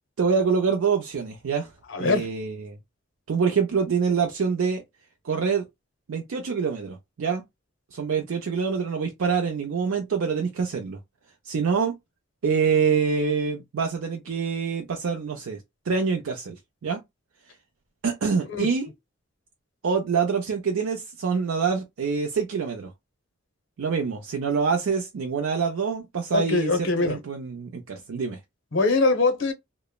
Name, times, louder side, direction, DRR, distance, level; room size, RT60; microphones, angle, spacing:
voice 1, 0.2-1.7 2.0-2.8 3.3-4.8 5.2-5.7 6.1-7.4 7.9-11.0 11.5-12.0 12.4-15.6 15.9-17.0 18.0-18.9 19.8-22.9 23.8-28.4, right 5 dB, 80° right, 0.5 m, -25 dB
voice 2, 1.9-2.3 18.5-18.7 26.3-27.2 28.7-29.5, left 3 dB, 65° left, 0.7 m, -22 dB
3.0 x 2.0 x 2.2 m
head